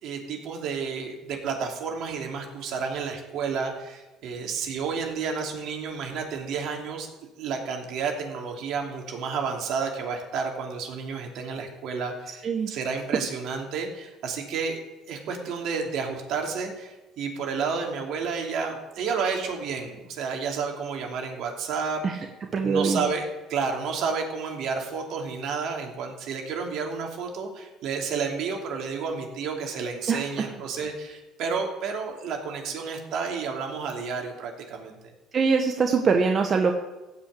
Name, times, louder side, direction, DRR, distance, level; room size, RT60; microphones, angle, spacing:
voice 1, 0.0-7.1 7.4-14.8 15.1-22.3 22.6-35.0, right 5 dB, 65° right, 2 dB, 2.9 m, -31 dB
voice 2, 22.5-23.0 30.1-30.5 35.3-36.7, right 5 dB, 40° right, 4 dB, 1.2 m, -23 dB
15.5 x 5.8 x 8.4 m, 1.1 s
supercardioid pair, 90°, 0 cm